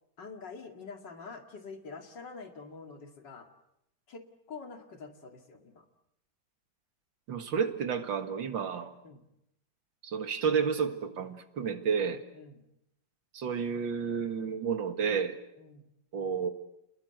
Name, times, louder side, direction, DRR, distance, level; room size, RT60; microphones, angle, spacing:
voice 1, 0.2-3.5 4.1-4.2 4.5-5.8 9.0-9.2 12.3-12.6 15.6-15.8, left 4 dB, 70° left, 6 dB, 2.9 m, -46 dB
voice 2, 7.3-8.9 10.0-12.2 13.3-15.4 16.1-16.5, right 6 dB, 85° right, 8 dB, 2.5 m, -31 dB
29.5 x 20.5 x 8.0 m, 0.84 s
omnidirectional pair, 2.0 m